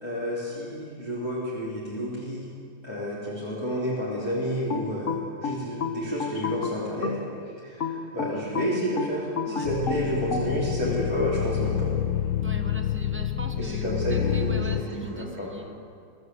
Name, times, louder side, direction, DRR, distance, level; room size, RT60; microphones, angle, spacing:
voice 1, 0.0-2.4 2.8-7.1 7.6-11.9 13.6-15.5, equal, 15° left, -9 dB, 3.8 m, -30 dB
sound 1, 4.7-7.3 7.8-10.5, left 5 dB, 45° left, 1.4 m, -30 dB
sound 2, 9.6-14.8, left 10 dB, 75° left, 1.5 m, -28 dB
voice 2, 12.4-15.8, equal, 10° right, 5 dB, 0.9 m, -40 dB
24.0 x 14.0 x 8.0 m, 2.3 s
omnidirectional pair, 2.1 m